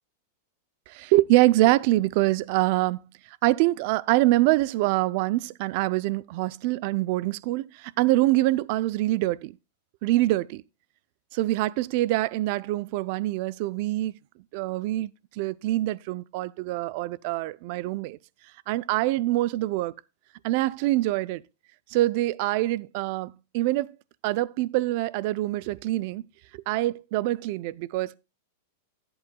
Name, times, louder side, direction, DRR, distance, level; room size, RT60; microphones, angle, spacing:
voice 1, 0.9-3.0 3.4-9.6 10.0-10.6 11.3-14.1 14.5-18.2 18.7-19.9 20.4-21.4 21.9-23.9 24.2-26.2 26.5-28.2, right 17 dB, 50° right, 0.4 m, -25 dB
14.5 x 7.8 x 2.2 m
supercardioid pair, 155°, 0 cm